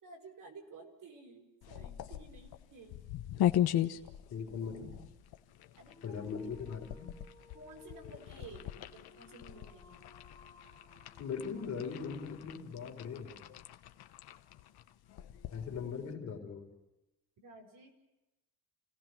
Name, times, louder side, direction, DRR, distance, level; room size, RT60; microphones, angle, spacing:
voice 1, 0.0-3.0 5.8-6.4 7.5-10.0 17.4-17.9, right 3 dB, 45° right, 2 dB, 5.1 m, -53 dB
sound 1, 1.6-16.1, left 12 dB, 55° left, 1.1 m, -39 dB
voice 2, 4.3-5.0 6.0-7.1 11.2-13.4 15.5-16.7, left 6 dB, 40° left, 2 dB, 3.8 m, -40 dB
Dog, 5.8-12.1, left 3 dB, 10° left, 2.5 m, -59 dB
29.5 x 17.5 x 6.0 m, 0.98 s
cardioid pair, 180°, 44 cm